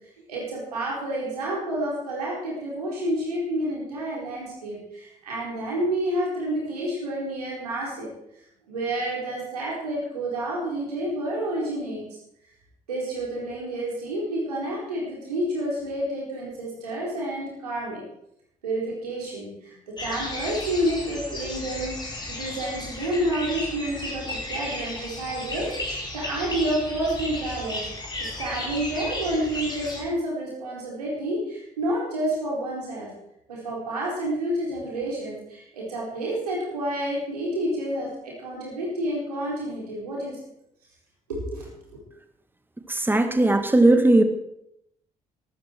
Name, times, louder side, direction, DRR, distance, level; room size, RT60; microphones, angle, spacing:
voice 1, 0.3-8.1 8.7-12.0 12.9-18.0 18.6-28.0 28.4-33.1 33.5-40.4 41.3-42.0, right 1 dB, 80° right, -4 dB, 4.3 m, -29 dB
sound 1, 20.0-30.0, left 2 dB, 20° left, 4.8 m, -34 dB
voice 2, 42.9-44.2, right 2 dB, 10° right, 8 dB, 1.7 m, -18 dB
17.5 x 13.0 x 4.6 m, 0.78 s
figure-of-eight pair, 45°, 20 cm